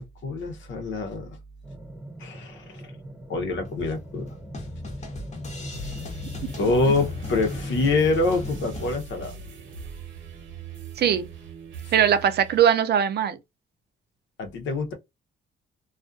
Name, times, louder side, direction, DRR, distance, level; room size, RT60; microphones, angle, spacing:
voice 1, 0.0-1.4 2.2-2.9 3.3-4.3 6.6-9.3 12.0-12.1 14.4-14.9, left 3 dB, 70° left, 0.9 m, -26 dB
sound 1, 1.6-8.0, right 1 dB, 5° right, 0.7 m, -43 dB
sound 2, 3.5-9.0, left 2 dB, 35° left, 0.9 m, -37 dB
sound 3, 5.6-12.6, right 2 dB, 80° right, 0.9 m, -40 dB
voice 2, 11.0-11.3 11.9-13.4, right 9 dB, 55° right, 0.5 m, -21 dB
2.4 x 2.4 x 2.4 m
cardioid pair, 90°, 20 cm